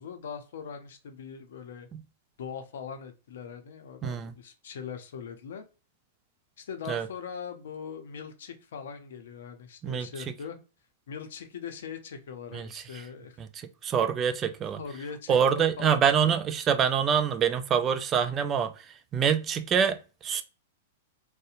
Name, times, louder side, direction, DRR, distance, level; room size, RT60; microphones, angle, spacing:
voice 1, 0.0-1.9 2.4-5.6 6.6-10.6 11.1-13.4 14.8-16.0, left 6 dB, 70° left, 0.5 m, -41 dB
voice 2, 4.0-4.3 6.9-7.1 9.8-10.1 12.5-13.0 13.4-14.8 15.3-20.4, right 7 dB, 30° right, 0.3 m, -26 dB
2.7 x 2.0 x 2.4 m
hypercardioid pair, 115°, 0 cm